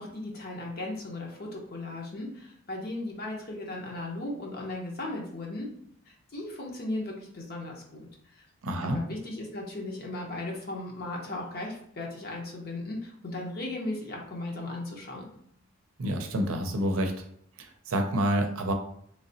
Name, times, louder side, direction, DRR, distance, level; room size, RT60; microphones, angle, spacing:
voice 1, 0.0-5.7 6.1-8.5 8.8-15.3, left 2 dB, 45° left, -1 dB, 0.7 m, -37 dB
voice 2, 8.6-9.0 16.0-17.2 17.6-18.7, equal, 75° right, 4 dB, 0.6 m, -28 dB
3.2 x 2.9 x 2.7 m, 0.67 s
head